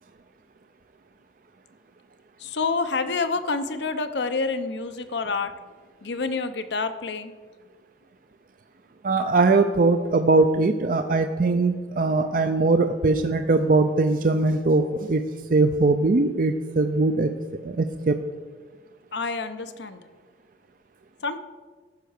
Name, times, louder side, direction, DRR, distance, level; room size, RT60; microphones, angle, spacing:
voice 1, 2.4-5.5 6.0-7.3 19.1-20.0 21.2-21.4, left 4 dB, 70° left, 10 dB, 0.8 m, -28 dB
voice 2, 9.0-15.2 15.5-17.3 17.6-18.2, right 3 dB, 45° right, 8 dB, 0.5 m, -21 dB
14.0 x 5.7 x 6.5 m, 1.4 s
head